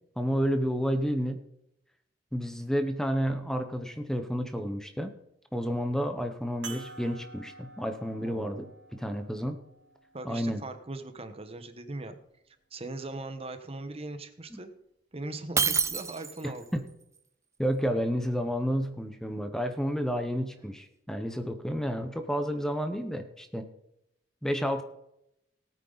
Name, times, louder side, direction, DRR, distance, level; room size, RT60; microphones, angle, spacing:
voice 1, 0.2-1.4 2.3-5.1 5.5-8.7 8.9-9.6 10.2-10.6 16.7-16.8 17.6-23.7 24.4-24.8, equal, 5° left, 7 dB, 0.9 m, -30 dB
sound 1, 6.6-11.4 12.2-12.3 14.5-14.6, right 4 dB, 75° right, 3.2 m, -49 dB
voice 2, 8.2-8.7 10.1-12.2 12.5-14.7 15.1-16.8, right 2 dB, 35° right, 9 dB, 1.2 m, -40 dB
Shatter, 15.6-16.6, right 6 dB, 15° right, 0.5 m, -27 dB
18.5 x 8.9 x 4.0 m, 0.80 s
head